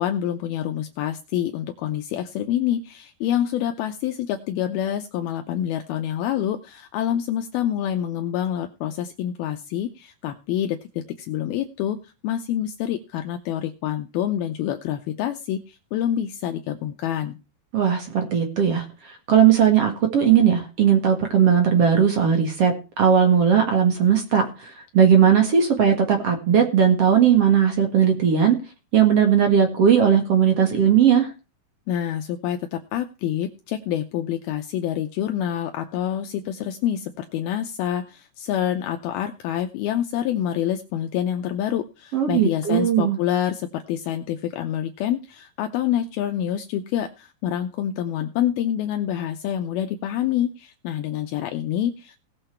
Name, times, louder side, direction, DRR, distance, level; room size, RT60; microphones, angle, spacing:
voice 1, 0.0-17.4 31.9-52.2, left 10 dB, 75° left, 5 dB, 2.5 m, -27 dB
voice 2, 17.7-28.6 28.9-31.3 42.1-43.2, right 8 dB, 50° right, 5 dB, 2.1 m, -18 dB
18.5 x 6.7 x 4.5 m, 0.32 s
omnidirectional pair, 4.7 m